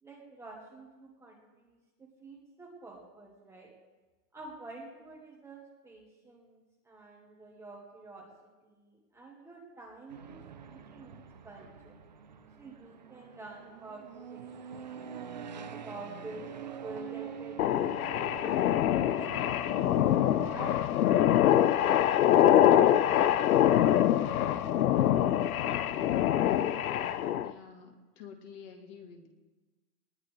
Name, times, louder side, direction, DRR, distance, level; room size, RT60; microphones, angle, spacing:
voice 1, 0.0-3.8 4.3-8.3 8.6-12.0 12.6-14.4 14.7-15.1 15.5-18.1 18.4-18.9 19.2-22.1 22.6-25.4, right 2 dB, 5° right, -3 dB, 1.2 m, -49 dB
sound 1, 10.1-22.2, right 7 dB, 30° right, 0.4 m, -46 dB
sound 2, 17.6-27.5, left 11 dB, 60° left, 0.8 m, -24 dB
voice 2, 27.4-29.3, left 6 dB, 25° left, 4 dB, 1.4 m, -49 dB
20.0 x 19.5 x 3.2 m, 1.2 s
supercardioid pair, 175°, 49 cm